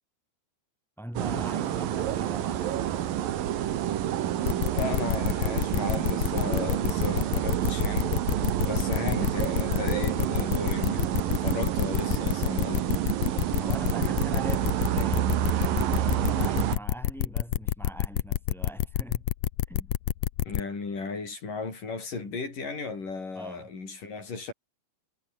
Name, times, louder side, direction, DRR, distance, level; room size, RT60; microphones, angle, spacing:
voice 1, 1.0-2.9 8.7-8.9 13.6-19.3 19.7-19.9 23.3-23.7, right 1 dB, ahead, 4.9 m, -41 dB
sound 1, 1.2-16.8, right 11 dB, 70° right, 3.2 m, -28 dB
sound 2, 4.4-20.6, left 14 dB, 85° left, 1.5 m, -28 dB
voice 2, 4.7-8.2 8.6-11.1 11.4-12.9 20.5-24.5, left 4 dB, 60° left, 8.7 m, -35 dB
omnidirectional pair, 4.3 m